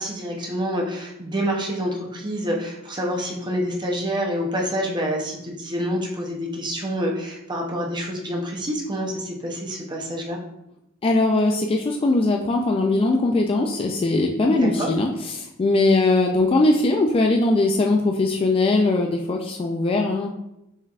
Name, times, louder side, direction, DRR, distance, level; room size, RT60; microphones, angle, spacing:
voice 1, 0.0-10.4 14.5-14.9, equal, 20° right, 0 dB, 0.7 m, -27 dB
voice 2, 11.0-20.3, left 2 dB, 25° left, 2 dB, 0.3 m, -20 dB
5.5 x 3.3 x 2.4 m, 0.85 s
head